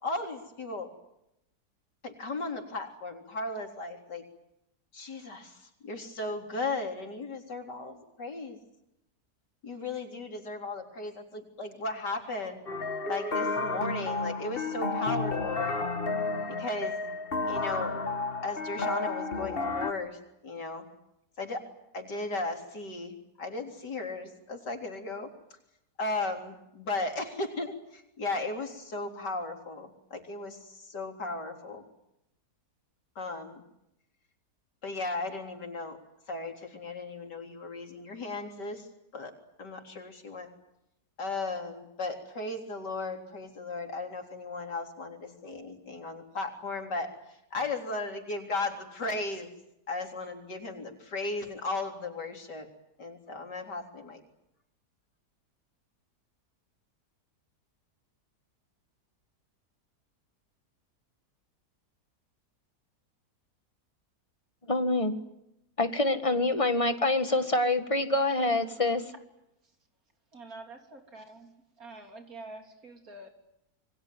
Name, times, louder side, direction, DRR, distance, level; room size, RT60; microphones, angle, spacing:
voice 1, 0.0-0.9 2.0-4.2 4.9-5.6 5.8-8.6 9.6-12.6 13.1-15.7 16.5-17.0 17.5-17.9 18.4-20.2 20.4-20.8 21.4-21.6 21.9-25.3 26.0-31.8 33.2-33.6 34.8-36.0 36.3-38.8 39.1-39.3 39.6-40.5 41.2-47.1 47.5-49.5 49.9-52.7 53.0-54.2, left 2 dB, 85° left, 4.3 m, -36 dB
sound 1, 12.7-19.9, left 3 dB, 35° left, 1.8 m, -32 dB
voice 2, 64.7-65.1 65.8-69.1, left 2 dB, 20° left, 1.8 m, -26 dB
voice 3, 70.3-71.5 71.8-73.3, right 2 dB, 55° right, 3.9 m, -46 dB
27.5 x 23.5 x 9.3 m
omnidirectional pair, 1.8 m